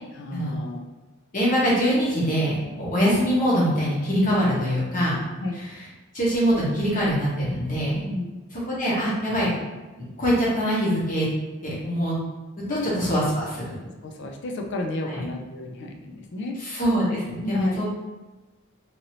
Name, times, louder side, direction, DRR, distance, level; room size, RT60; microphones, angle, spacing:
voice 1, 0.1-0.8 5.4-5.6 8.1-8.3 12.7-12.9 13.8-16.6 17.4-17.8, left 2 dB, 60° left, 2 dB, 0.4 m, -32 dB
voice 2, 1.3-5.1 6.1-8.0 8.7-9.5 10.0-11.3 11.6-12.1 12.7-13.8 15.1-15.2 16.6-17.9, equal, 40° left, -6 dB, 1.1 m, -23 dB
2.9 x 2.7 x 2.8 m, 1.2 s
head